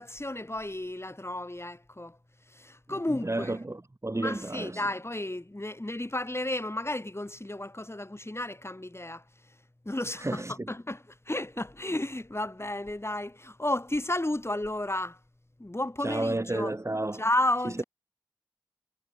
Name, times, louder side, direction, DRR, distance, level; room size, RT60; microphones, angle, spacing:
voice 1, 0.0-2.2 2.5-3.6 4.2-9.2 9.9-15.2 15.6-16.8 17.1-17.8, left 1 dB, 35° left, 7.3 m, -32 dB
voice 2, 3.2-4.8 10.2-10.5 16.0-17.2, right 2 dB, 40° right, 1.2 m, -31 dB
wide cardioid pair, 40°, 8 cm